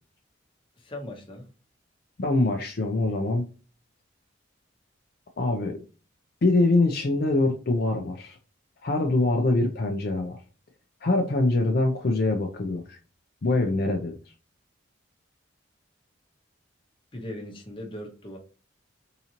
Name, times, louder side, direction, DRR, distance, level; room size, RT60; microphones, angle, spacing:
voice 1, 0.8-1.5 17.1-18.4, left 1 dB, 25° left, 0.8 m, -39 dB
voice 2, 2.2-3.5 5.4-5.8 6.4-8.4 8.8-10.4 11.0-13.0 13.4-14.2, left 2 dB, 50° left, 0.5 m, -24 dB
3.8 x 2.9 x 2.7 m
head